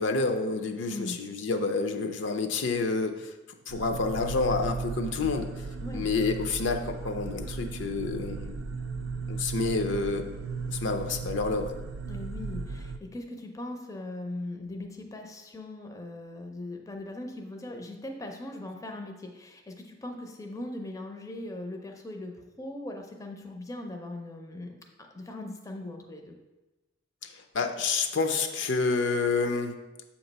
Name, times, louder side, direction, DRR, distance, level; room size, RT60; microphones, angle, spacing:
voice 1, 0.0-3.3 3.7-5.5 5.9-8.7 9.3-10.2 10.7-11.7 27.2-29.7, left 4 dB, 70° left, 5 dB, 0.5 m, -29 dB
sound 1, 3.7-13.0, right 4 dB, 85° right, 0.4 m, -36 dB
voice 2, 12.1-26.3, left 1 dB, 15° left, 3 dB, 0.5 m, -40 dB
7.2 x 3.0 x 5.2 m, 1.1 s
head